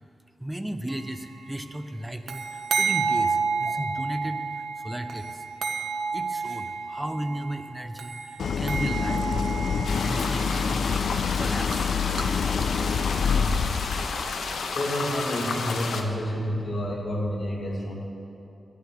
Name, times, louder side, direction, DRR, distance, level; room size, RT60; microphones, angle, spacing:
voice 1, 0.4-5.4 6.1-11.0 11.4-11.9, right 1 dB, 10° right, 8 dB, 0.5 m, -35 dB
sound 1, 0.9-1.4 2.3-7.7 8.0-10.9 11.5-11.8 12.2-12.3, right 5 dB, 90° right, 0.9 m, -30 dB
Idling, 8.4-14.5, left 6 dB, 65° left, 0.4 m, -27 dB
sound 2, 9.8-16.0, left 4 dB, 85° left, 1.0 m, -31 dB
voice 2, 14.7-17.9, equal, 40° left, -5 dB, 2.2 m, -29 dB
13.5 x 6.6 x 9.4 m, 2.7 s
wide cardioid pair, 175°, 0 cm